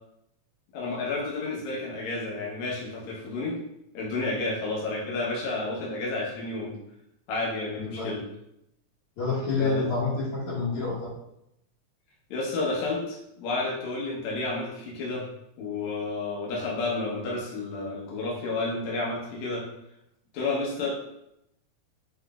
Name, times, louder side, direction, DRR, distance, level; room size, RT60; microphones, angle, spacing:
voice 1, 0.7-3.5 3.9-6.7 7.3-8.2 9.5-9.8 12.3-15.2 15.6-19.6 20.3-20.9, left 3 dB, 75° left, -4 dB, 2.2 m, -31 dB
voice 2, 7.8-8.1 9.2-11.1, left 3 dB, 60° left, -11 dB, 1.8 m, -28 dB
5.9 x 3.2 x 2.3 m, 0.81 s
omnidirectional pair, 3.4 m